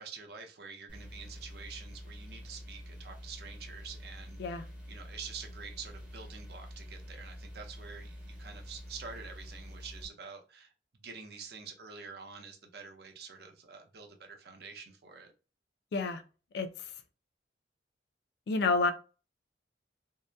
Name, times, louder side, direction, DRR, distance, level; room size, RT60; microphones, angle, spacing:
voice 1, 0.0-10.7 11.0-15.3, right 5 dB, 60° right, 0.5 m, -47 dB
sound 1, 0.9-10.1, equal, 5° right, 0.6 m, -47 dB
voice 2, 15.9-16.2 16.5-16.9 18.5-18.9, left 3 dB, 65° left, 0.3 m, -29 dB
2.7 x 2.0 x 2.2 m
head